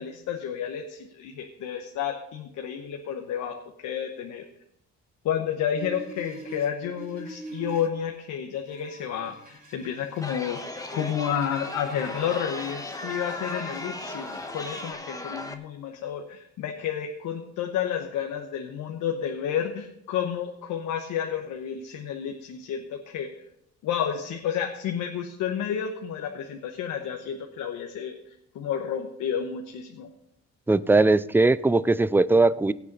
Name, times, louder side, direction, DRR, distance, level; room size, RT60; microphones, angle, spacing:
voice 1, 0.0-4.4 5.2-10.6 10.9-23.3 23.8-28.1 28.5-30.1, left 8 dB, 85° left, 3 dB, 1.1 m, -31 dB
sound 1, 5.7-7.9 8.7-14.9, right 1 dB, 30° right, 3.3 m, -45 dB
Chatter, 10.2-15.5, left 2 dB, 10° left, 1.2 m, -36 dB
voice 2, 30.7-32.7, right 2 dB, 5° right, 17 dB, 0.4 m, -20 dB
17.5 x 8.4 x 4.0 m, 0.77 s
cardioid pair, 90°, 30 cm